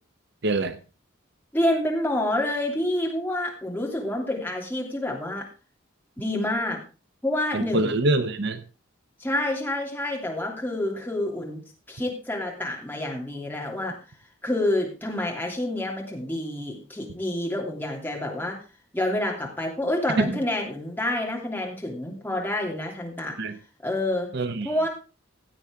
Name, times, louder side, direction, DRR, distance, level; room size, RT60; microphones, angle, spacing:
voice 1, 0.4-0.8 7.5-8.6 20.2-20.4 23.4-23.6 24.3-24.7, right 2 dB, 55° right, 10 dB, 0.8 m, -24 dB
voice 2, 1.5-5.5 6.2-6.8 7.2-8.0 9.2-11.6 11.9-14.0 14.4-18.6 18.9-23.4 23.8-24.3 24.6-24.9, left 1 dB, 10° left, -1 dB, 2.9 m, -28 dB
16.0 x 7.9 x 3.6 m, 0.33 s
head